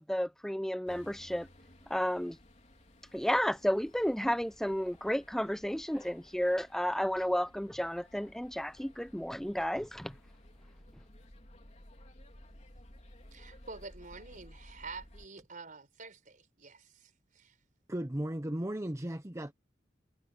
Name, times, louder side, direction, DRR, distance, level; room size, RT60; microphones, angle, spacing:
voice 1, 0.0-1.5 1.9-2.4 3.1-10.1, equal, 5° left, 0.5 m, -32 dB
sound 1, 0.9-15.3, left 1 dB, 40° left, 3.5 m, -56 dB
voice 2, 13.3-17.6, right 4 dB, 45° right, 4.5 m, -48 dB
voice 3, 17.9-19.5, right 1 dB, 15° right, 0.8 m, -35 dB
head